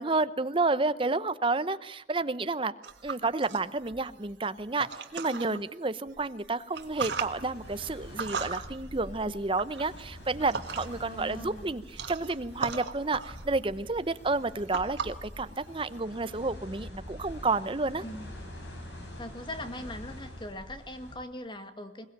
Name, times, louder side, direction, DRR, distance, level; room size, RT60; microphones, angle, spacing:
voice 1, 0.0-2.7 3.0-4.9 5.1-11.8 12.1-18.0, right 3 dB, 30° right, 14 dB, 0.8 m, -30 dB
sound 1, 2.8-5.6 6.1-11.1 11.4-16.0, right 5 dB, 85° right, 1.8 m, -39 dB
voice 2, 5.3-5.6 11.0-11.7 18.0-18.4 19.2-22.1, left 1 dB, 25° left, 8 dB, 1.8 m, -41 dB
sound 2, 6.7-21.1, left 1 dB, 80° left, 7.7 m, -46 dB
21.5 x 20.5 x 8.9 m, 0.87 s
head